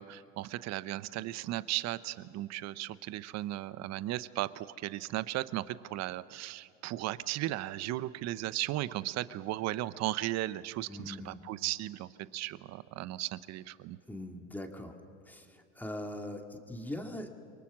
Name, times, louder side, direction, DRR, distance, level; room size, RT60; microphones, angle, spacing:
voice 1, 0.0-14.0, right 15 dB, 45° right, 16 dB, 0.9 m, -36 dB
voice 2, 10.9-11.4 14.0-15.0 15.3-17.3, left 1 dB, 5° left, 3 dB, 2.2 m, -41 dB
28.5 x 23.5 x 6.2 m, 2.5 s
hypercardioid pair, 105°, 39 cm